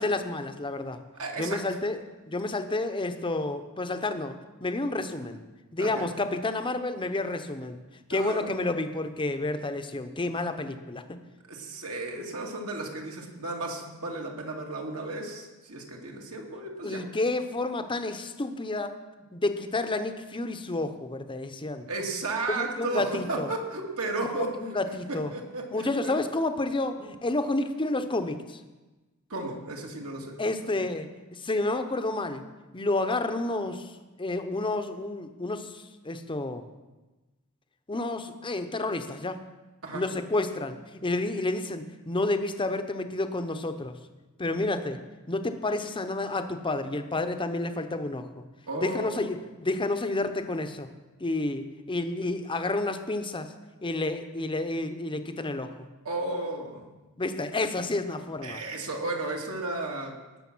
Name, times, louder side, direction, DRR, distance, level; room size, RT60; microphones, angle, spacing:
voice 1, 0.0-1.0 1.4-2.0 2.3-4.3 4.6-5.4 5.7-7.8 8.1-11.2 16.8-19.0 19.3-21.9 22.6-23.5 24.6-25.3 25.7-28.6 30.4-32.4 32.7-33.9 34.2-36.6 37.9-39.4 39.9-43.9 44.4-45.0 45.3-48.3 48.8-50.9 51.2-53.5 53.8-55.8 57.2-58.6, left 2 dB, 20° left, 8 dB, 0.8 m, -30 dB
voice 2, 1.1-1.6 5.8-6.2 8.1-8.5 11.5-17.0 21.9-24.5 25.1-26.2 29.3-30.4 39.8-40.0 48.7-49.5 56.0-56.9 58.4-60.1, right 2 dB, 70° right, 0 dB, 2.3 m, -34 dB
18.5 x 6.4 x 6.2 m, 1.2 s
head